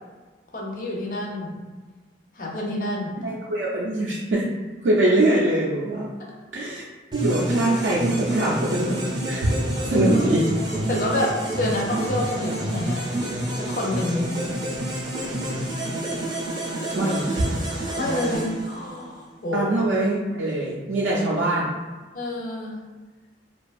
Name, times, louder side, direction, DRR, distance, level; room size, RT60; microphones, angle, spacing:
voice 1, 0.5-1.5 2.3-3.2 6.7-6.8 9.7-10.3 10.9-13.0 13.5-14.4 18.0-19.7 22.1-22.8, left 1 dB, 45° left, -2 dB, 0.5 m, -28 dB
voice 2, 3.2-4.5 4.8-6.1 6.5-6.8 7.1-9.0 9.3-9.5 9.8-10.4 16.9-17.5 19.5-21.7, right 1 dB, 85° right, -5 dB, 0.4 m, -22 dB
sound 1, 7.1-19.2, right 1 dB, 25° right, 0.4 m, -28 dB
2.5 x 2.3 x 2.3 m, 1.3 s
head